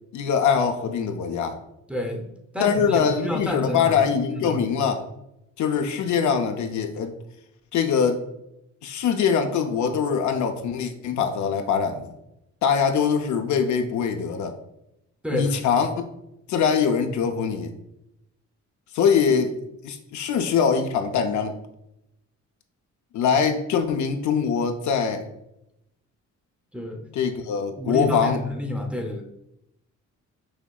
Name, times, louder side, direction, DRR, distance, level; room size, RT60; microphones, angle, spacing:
voice 1, 0.1-1.6 2.6-5.0 5.6-7.1 7.7-8.2 8.8-12.1 12.6-14.6 15.3-15.9 16.5-17.7 18.9-19.5 19.8-21.5 23.1-25.2 27.2-28.4, left 6 dB, 70° left, 5 dB, 0.6 m, -23 dB
voice 2, 1.9-2.3 2.5-4.6 15.2-15.6 26.7-27.1 27.8-29.2, left 1 dB, 5° right, 2 dB, 0.7 m, -29 dB
6.3 x 2.8 x 2.3 m, 0.84 s
cardioid pair, 90°, 30 cm